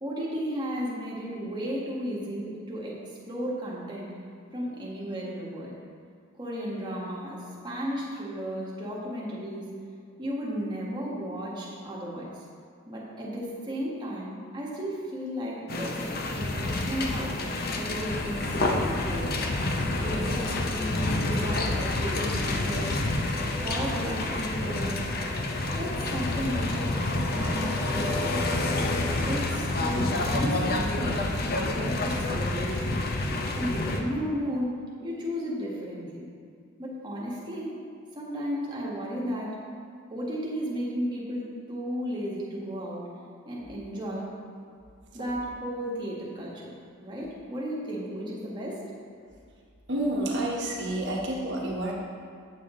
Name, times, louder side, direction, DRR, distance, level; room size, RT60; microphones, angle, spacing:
voice 1, 0.0-4.1 4.5-5.7 6.4-9.7 10.2-12.4 12.9-17.4 17.7-19.5 20.0-23.0 23.3-25.1 25.7-27.0 27.3-28.4 29.3-33.0 33.5-36.3 36.8-37.7 38.1-39.6 40.1-43.1 43.4-44.3 45.1-46.7 47.0-48.8, equal, 20° right, -5 dB, 1.5 m, -34 dB
sound 1, 15.7-34.0, left 2 dB, 45° left, 0.7 m, -28 dB
voice 2, 49.9-51.9, right 1 dB, 55° right, -2 dB, 1.1 m, -29 dB
8.5 x 7.0 x 3.7 m, 2.3 s
head